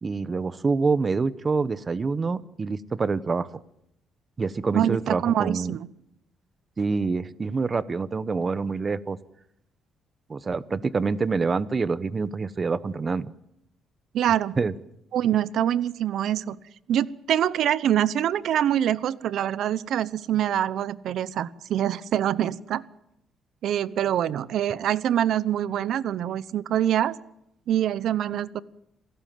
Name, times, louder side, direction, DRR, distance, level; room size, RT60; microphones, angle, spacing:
voice 1, 0.0-3.5 4.4-5.7 6.8-9.2 10.3-13.3 14.6-14.7, right 4 dB, 25° right, 16 dB, 1.0 m, -26 dB
voice 2, 4.7-5.9 14.1-14.6 15.1-16.6 16.9-22.8 23.6-27.2 27.7-28.6, right 10 dB, 65° right, 18 dB, 0.9 m, -25 dB
28.0 x 17.5 x 7.6 m, 0.77 s
cardioid pair, 135°, 0 cm